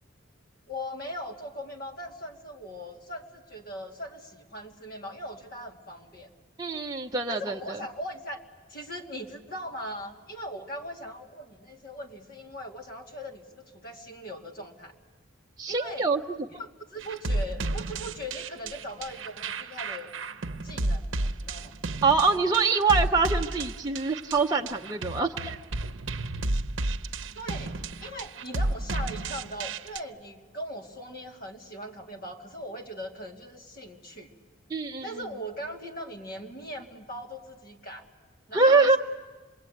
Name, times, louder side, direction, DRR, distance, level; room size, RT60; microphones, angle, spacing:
voice 1, 0.7-6.3 7.3-8.4 8.7-14.9 15.7-16.1 16.6-20.1 20.6-21.8 27.3-34.3 35.0-38.1 38.5-39.0, equal, 50° left, 2 dB, 2.3 m, -40 dB
voice 2, 6.6-7.8 15.6-16.2 22.0-25.6 34.7-35.0 38.5-39.0, right 4 dB, 20° right, 0 dB, 0.7 m, -24 dB
sound 1, 17.0-30.0, right 2 dB, 75° right, 0.8 m, -32 dB
26.5 x 21.5 x 9.2 m, 1.3 s
head